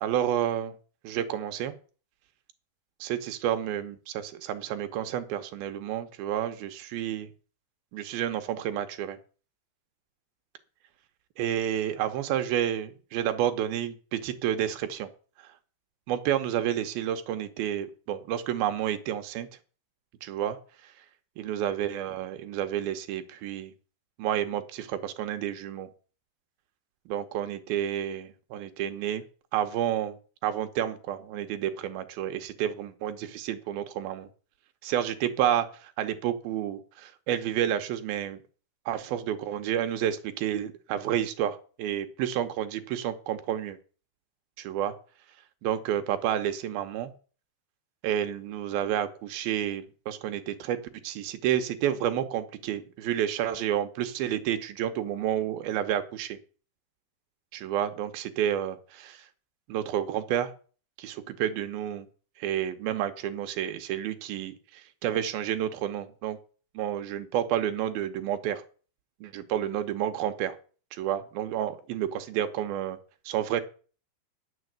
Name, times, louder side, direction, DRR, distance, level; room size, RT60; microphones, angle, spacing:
voice 1, 0.0-0.7 1.0-1.7 3.0-7.3 7.9-9.2 11.4-15.1 16.1-19.5 20.2-20.6 21.4-23.7 24.2-25.9 27.1-29.2 29.5-30.2 30.4-34.3 34.8-38.4 38.9-43.8 44.6-44.9 45.6-47.1 48.0-50.8 51.0-56.4 57.5-59.2 59.7-60.5 61.0-62.1 62.4-66.4 66.7-68.6 69.2-70.6 70.9-73.0 73.3-73.6, right 10 dB, 75° right, 8 dB, 2.7 m, -30 dB
10.0 x 6.8 x 8.0 m, 0.39 s
omnidirectional pair, 4.5 m